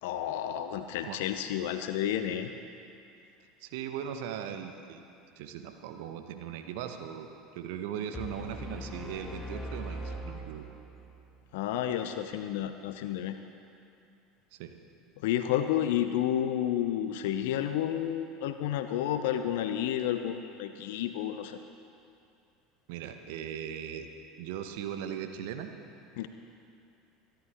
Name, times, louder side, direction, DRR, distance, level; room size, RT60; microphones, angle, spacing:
voice 1, 0.0-2.5 11.5-13.4 15.2-21.6 26.2-26.3, left 11 dB, 60° left, 9 dB, 0.6 m, -31 dB
voice 2, 3.6-5.0 5.4-10.6 14.5-14.7 22.9-24.1 24.4-25.7, right 9 dB, 55° right, 7 dB, 1.0 m, -39 dB
sound 1, 8.1-11.2, equal, 10° left, 1.7 m, -40 dB
24.0 x 11.5 x 3.5 m, 2.6 s
figure-of-eight pair, 70°, 0 cm